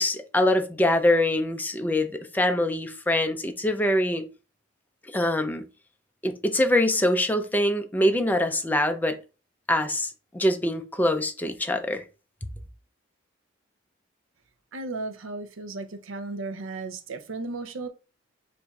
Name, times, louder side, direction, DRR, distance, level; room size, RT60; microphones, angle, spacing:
voice 1, 0.0-4.2 5.1-5.6 6.2-9.2 9.7-12.0 12.4-12.5, left 1 dB, 10° left, 0.4 m, -24 dB
voice 2, 14.7-17.9, right 3 dB, 75° right, 0.6 m, -35 dB
6.9 x 2.6 x 2.3 m
head